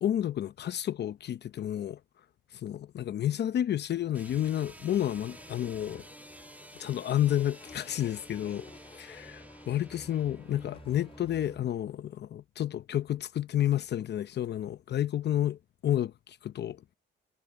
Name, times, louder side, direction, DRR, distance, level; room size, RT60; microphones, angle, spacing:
voice 1, 0.0-2.0 2.5-6.1 6.8-8.6 8.9-17.0, left 11 dB, 60° left, 0.8 m, -30 dB
sound 1, 4.1-11.7, right 1 dB, 10° right, 1.5 m, -50 dB
sound 2, 5.1-11.6, left 4 dB, 30° left, 2.4 m, -54 dB
cardioid pair, 90°, 20 cm